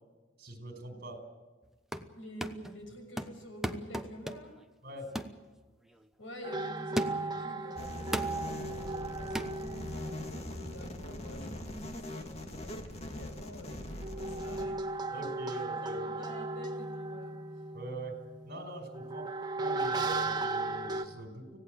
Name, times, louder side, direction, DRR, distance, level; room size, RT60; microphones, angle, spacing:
voice 1, 0.4-1.2 4.8-5.2 15.1-16.1 17.7-19.3 19.6-21.6, right 1 dB, 55° right, 5 dB, 4.9 m, -43 dB
sound 1, 1.6-2.1 2.4-2.8 3.2-4.6 5.2-5.4 5.9-6.0 7.0-7.4 8.1-8.4 9.4-9.6, equal, ahead, 1.0 m, -36 dB
voice 2, 2.1-4.6 6.2-17.7, equal, 90° left, 4 dB, 6.5 m, -48 dB
sound 2, 6.4-11.4 13.7-21.0, right 3 dB, 20° right, 1.7 m, -37 dB
sound 3, 7.8-14.7, left 1 dB, 35° left, 2.3 m, -42 dB
25.5 x 17.5 x 7.8 m, 1.3 s
head